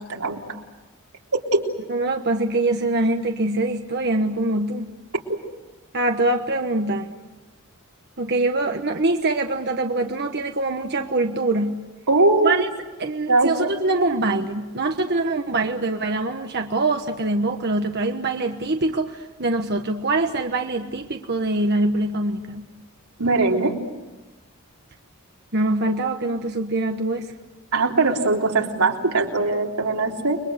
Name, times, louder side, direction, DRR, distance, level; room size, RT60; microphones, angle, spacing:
voice 1, 0.1-0.4 1.3-1.6 12.1-12.6 13.3-13.7 23.2-23.7 27.7-30.4, right 3 dB, 80° right, 0 dB, 3.5 m, -20 dB
voice 2, 1.9-4.9 5.9-7.2 8.2-11.8 12.4-12.7 13.0-22.7 25.5-27.3, right 2 dB, 50° right, 4 dB, 1.2 m, -24 dB
29.5 x 22.5 x 8.1 m, 1.2 s
head